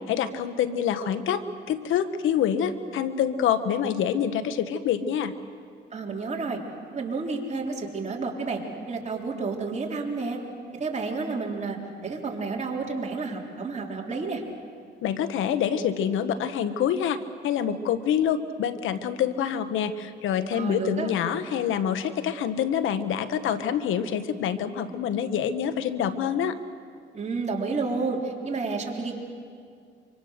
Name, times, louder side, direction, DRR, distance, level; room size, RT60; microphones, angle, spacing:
voice 1, 0.1-5.3 15.0-17.2 17.4-26.5, left 8 dB, 85° left, 12 dB, 1.1 m, -26 dB
voice 2, 5.9-6.6 6.9-8.6 8.9-10.4 10.7-14.4 20.5-21.1 27.1-29.1, right 4 dB, 35° right, 0 dB, 3.7 m, -30 dB
25.0 x 25.0 x 6.6 m, 2.2 s
cardioid pair, 90°, 20 cm